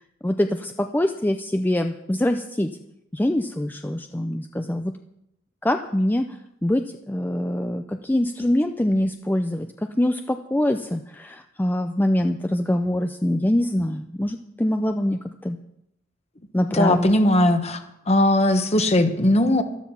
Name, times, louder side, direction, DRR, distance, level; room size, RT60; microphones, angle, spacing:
voice 1, 0.2-2.7 3.1-4.9 5.6-6.3 6.6-15.6 16.5-17.1, left 1 dB, 10° left, 6 dB, 0.5 m, -24 dB
voice 2, 16.7-17.8 18.1-19.6, left 1 dB, 35° left, 7 dB, 1.3 m, -19 dB
13.0 x 13.0 x 5.7 m, 0.80 s
head